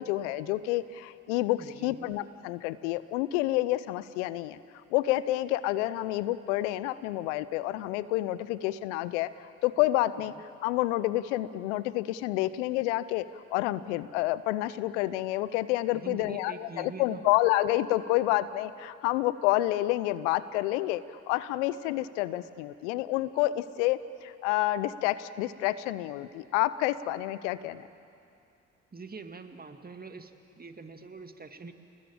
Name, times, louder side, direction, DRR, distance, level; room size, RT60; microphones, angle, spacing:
voice 1, 0.0-4.6 4.9-13.2 13.5-27.8, left 16 dB, 80° left, 16 dB, 0.8 m, -29 dB
voice 2, 1.6-2.1 10.3-10.4 15.9-17.2 28.9-31.7, right 4 dB, 25° right, 7 dB, 2.2 m, -44 dB
29.5 x 19.5 x 8.8 m, 2.5 s
hypercardioid pair, 45°, 35 cm